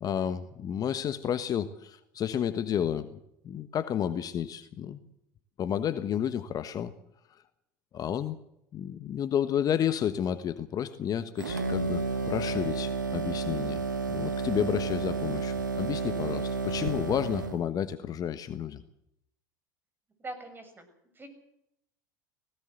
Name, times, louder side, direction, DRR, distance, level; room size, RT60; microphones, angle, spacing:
voice 1, 0.0-3.2 3.4-5.0 5.6-6.9 7.9-8.4 8.7-13.8 14.1-18.8, left 9 dB, 40° left, 12 dB, 1.3 m, -31 dB
sound 1, 11.4-17.6, right 4 dB, 90° right, 2.0 m, -31 dB
voice 2, 20.2-20.9 21.1-21.3, right 2 dB, 20° right, 8 dB, 6.9 m, -42 dB
19.5 x 17.0 x 8.0 m, 0.80 s
hypercardioid pair, 80°, 10 cm